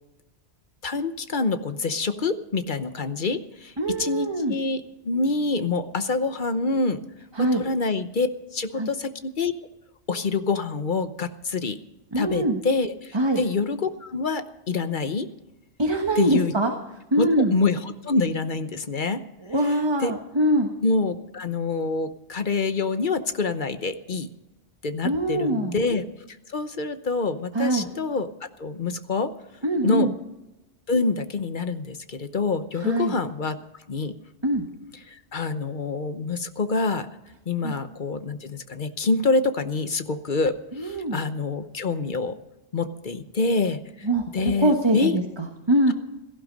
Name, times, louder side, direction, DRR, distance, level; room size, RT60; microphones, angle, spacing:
voice 1, 0.8-3.7 4.0-7.0 7.4-9.5 10.1-11.8 12.2-15.3 16.2-16.5 17.2-19.2 19.6-20.1 20.8-24.3 24.8-26.0 26.5-29.3 29.8-30.1 30.9-33.6 33.9-34.1 35.1-37.1 37.5-42.4 42.7-44.1 44.3-45.2, left 3 dB, 45° left, 10 dB, 1.0 m, -26 dB
voice 2, 3.8-4.5 7.4-7.6 8.8-8.9 12.1-12.6 13.1-13.4 15.8-16.7 17.1-17.5 19.4-20.7 25.0-25.8 27.5-27.9 29.6-30.1 32.8-33.1 34.4-34.6 37.6-37.7 40.8-41.2 44.0-45.9, right 1 dB, 25° right, 3 dB, 1.4 m, -23 dB
17.0 x 15.0 x 5.3 m, 0.97 s
omnidirectional pair, 1.2 m